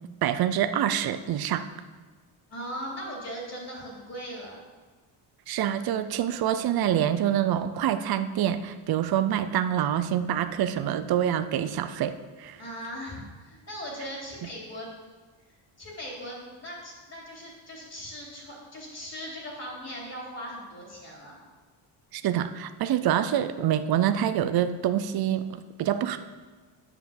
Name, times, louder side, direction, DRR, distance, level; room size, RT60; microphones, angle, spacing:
voice 1, 0.2-1.7 5.5-12.6 22.1-26.2, right 10 dB, 50° right, 11 dB, 0.6 m, -26 dB
voice 2, 2.5-4.6 12.6-14.9 15.8-21.4, equal, 30° left, -3 dB, 3.4 m, -39 dB
10.0 x 5.9 x 7.1 m, 1.4 s
cardioid pair, 165°, 49 cm